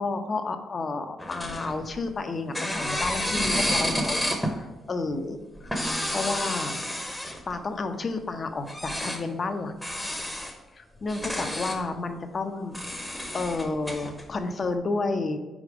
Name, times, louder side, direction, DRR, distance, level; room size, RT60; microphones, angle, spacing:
voice 1, 0.0-4.2 4.5-5.8 6.1-6.8 7.5-9.7 10.7-13.1 13.3-15.4, left 3 dB, 40° left, 7 dB, 0.7 m, -31 dB
sound 1, 1.2-2.1 2.5-4.6 5.6-7.5 8.7-9.2 9.8-10.5 11.0-11.8 12.7-14.2, equal, 5° left, 0.9 m, -30 dB
5.1 x 4.1 x 4.9 m, 1.1 s
cardioid pair, 90°, 0 cm